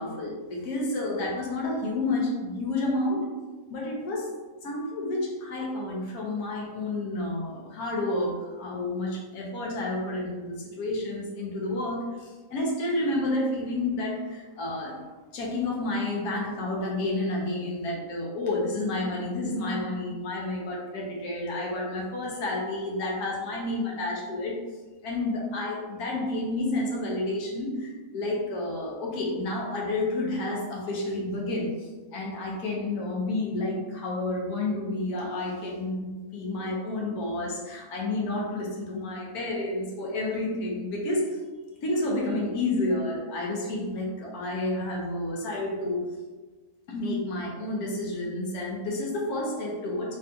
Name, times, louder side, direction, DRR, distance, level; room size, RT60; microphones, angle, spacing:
voice 1, 0.0-3.3 3.7-4.3 4.6-15.1 15.3-24.6 25.0-41.4 41.8-46.0 46.9-50.2, left 2 dB, 90° left, -3 dB, 1.3 m, -30 dB
4.0 x 2.3 x 2.6 m, 1.3 s
omnidirectional pair, 1.5 m